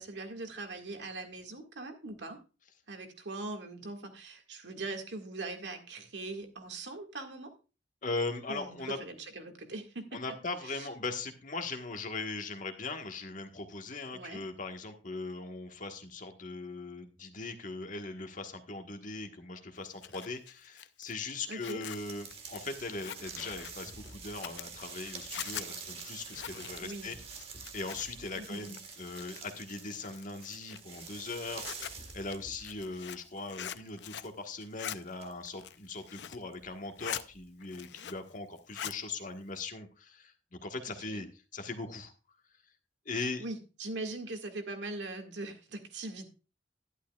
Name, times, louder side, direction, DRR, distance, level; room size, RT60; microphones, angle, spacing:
voice 1, 0.0-2.4 2.9-7.5 8.5-10.2 10.6-10.9 14.1-14.4 21.5-21.8 26.8-27.1 28.4-28.7 41.1-41.3 43.4-46.3, right 2 dB, 85° right, 4 dB, 1.9 m, -41 dB
voice 2, 8.0-9.0 10.1-27.2 27.7-41.3 41.5-42.1 43.0-43.4, left 3 dB, 50° left, 5 dB, 1.4 m, -40 dB
Zipper (clothing), 19.8-28.3 28.6-29.6 30.0-34.4 34.6-35.0 35.4-36.5 36.8-37.3 37.6-38.3 38.6-39.0, left 10 dB, 70° left, 0.6 m, -43 dB
sound 1, 21.8-33.2 33.5-35.8 36.5-36.7 37.3-37.4, right 5 dB, 35° right, 1.6 m, -47 dB
11.5 x 11.0 x 2.4 m, 0.32 s
head